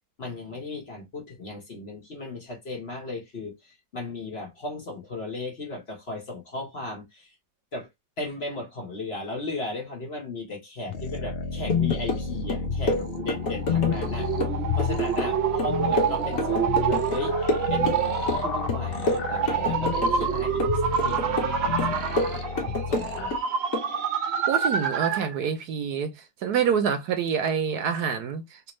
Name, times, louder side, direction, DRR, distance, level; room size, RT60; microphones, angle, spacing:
voice 1, 0.2-7.4 7.7-7.9 8.2-14.3 14.7-23.3, left 2 dB, 40° left, 1.4 m, -36 dB
sound 1, 10.9-23.4, left 6 dB, 85° left, 0.5 m, -31 dB
sound 2, 11.7-12.2 12.5-14.1 14.4-17.2 17.5-18.4 18.7-20.3 20.6-21.5 21.8-23.4 23.7-23.9, left 2 dB, 60° left, 1.5 m, -29 dB
sound 3, 12.6-25.4, right 6 dB, 45° right, 0.9 m, -27 dB
voice 2, 24.5-26.1 26.4-28.7, right 7 dB, 70° right, 1.2 m, -26 dB
3.5 x 2.9 x 3.0 m
omnidirectional pair, 1.8 m